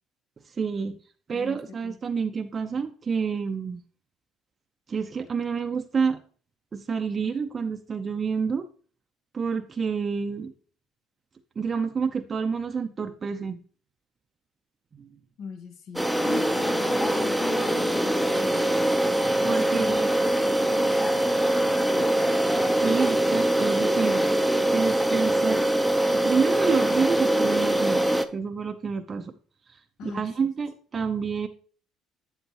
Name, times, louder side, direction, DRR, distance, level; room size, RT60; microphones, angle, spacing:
voice 1, 0.5-1.0 1.3-3.8 4.9-6.2 6.7-8.7 9.3-10.5 11.6-13.6 14.9-15.1 19.4-20.1 22.6-24.2 24.7-25.6 26.1-28.0 28.3-29.3 29.7-31.5, right 5 dB, 35° right, 6 dB, 0.6 m, -28 dB
voice 2, 1.3-2.0 15.4-18.6 19.4-22.1 30.0-30.5, left 5 dB, 65° left, 5 dB, 1.4 m, -41 dB
sound 1, 16.0-28.3, right 1 dB, ahead, 0.7 m, -23 dB
7.9 x 7.7 x 2.9 m, 0.42 s
supercardioid pair, 75°, 0 cm